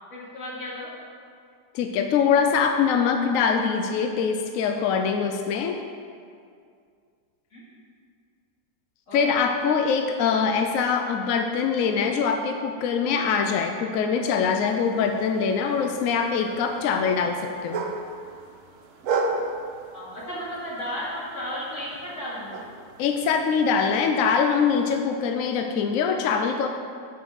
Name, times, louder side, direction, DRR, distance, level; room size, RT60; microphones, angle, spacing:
voice 1, 0.1-0.9 7.5-7.6 9.1-9.2 19.9-22.6, equal, 45° left, -7 dB, 2.5 m, -34 dB
voice 2, 1.7-5.8 9.1-17.8 23.0-26.7, left 6 dB, 70° left, 4 dB, 0.8 m, -23 dB
sound 1, 14.5-25.0, right 3 dB, 60° right, 1.0 m, -36 dB
6.9 x 5.8 x 6.6 m, 2.3 s
omnidirectional pair, 1.9 m